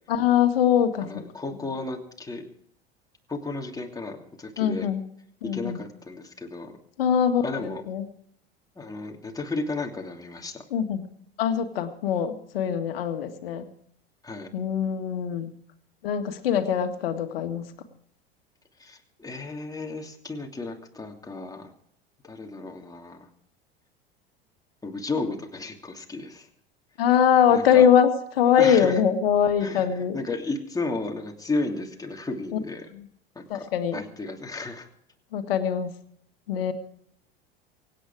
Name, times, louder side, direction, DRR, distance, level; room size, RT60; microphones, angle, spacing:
voice 1, 0.1-1.2 4.6-5.0 5.4-5.8 7.0-8.0 10.7-11.0 11.4-13.6 14.5-15.5 16.0-17.7 27.0-30.2 32.9-33.0 33.5-34.0 35.3-36.0 36.5-36.7, left 8 dB, 65° left, 8 dB, 1.9 m, -22 dB
voice 2, 1.0-2.4 3.3-4.9 5.4-6.7 7.4-7.8 8.7-10.6 14.2-14.5 18.8-21.7 22.2-23.3 24.8-26.5 27.5-27.9 28.6-29.0 29.6-32.9 33.3-33.7 33.9-34.9, left 3 dB, 10° left, 2 dB, 2.9 m, -33 dB
24.5 x 9.5 x 4.9 m, 0.66 s
figure-of-eight pair, 80°, 31 cm